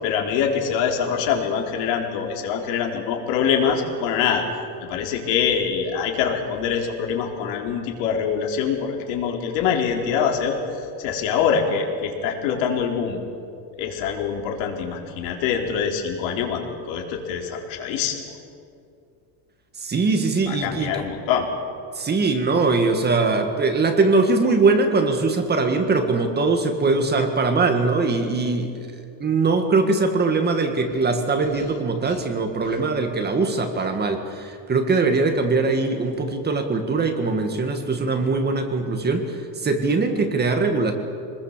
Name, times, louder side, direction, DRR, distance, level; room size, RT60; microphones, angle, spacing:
voice 1, 0.0-4.5 4.8-10.6 11.0-13.2 13.8-18.2 20.5-21.5, left 7 dB, 80° left, 2 dB, 4.0 m, -24 dB
voice 2, 19.8-21.1 21.9-40.9, right 3 dB, 20° right, 5 dB, 1.9 m, -21 dB
26.0 x 20.5 x 7.4 m, 2.4 s
cardioid pair, 160°, 45 cm